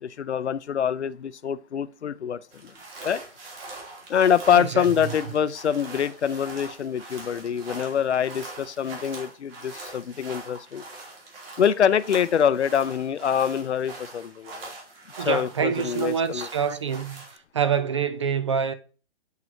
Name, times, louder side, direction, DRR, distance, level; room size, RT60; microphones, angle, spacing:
voice 1, 0.0-2.7 3.0-3.2 4.1-10.8 11.6-14.7 15.2-16.5, left 8 dB, 80° left, 0.6 m, -25 dB
sound 1, 2.5-17.4, right 2 dB, 55° right, 2.9 m, -42 dB
voice 2, 4.5-4.9 15.2-17.2 17.5-18.7, right 7 dB, 30° right, 0.3 m, -26 dB
8.1 x 4.7 x 2.7 m
figure-of-eight pair, 130°, 33 cm